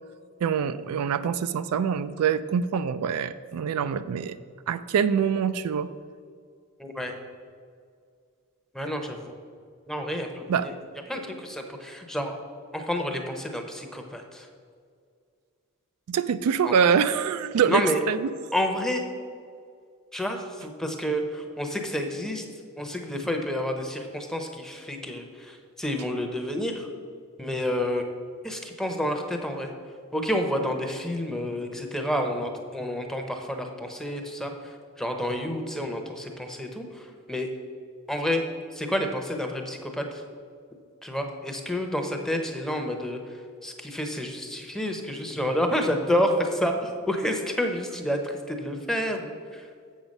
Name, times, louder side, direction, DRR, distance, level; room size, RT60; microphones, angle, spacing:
voice 1, 0.4-4.4 4.7-5.9 10.5-10.7 16.1-18.3, right 7 dB, 75° right, 13 dB, 0.3 m, -25 dB
voice 2, 6.8-7.1 8.7-9.4 9.9-10.7 11.1-12.3 12.7-14.5 16.6-16.9 17.7-18.0 18.5-19.0 20.1-22.4 22.8-26.9 27.4-28.0 28.4-29.7 30.1-37.5 38.1-38.4 38.7-40.2 41.0-49.7, equal, ahead, 4 dB, 0.7 m, -29 dB
7.3 x 7.0 x 5.3 m, 2.2 s
head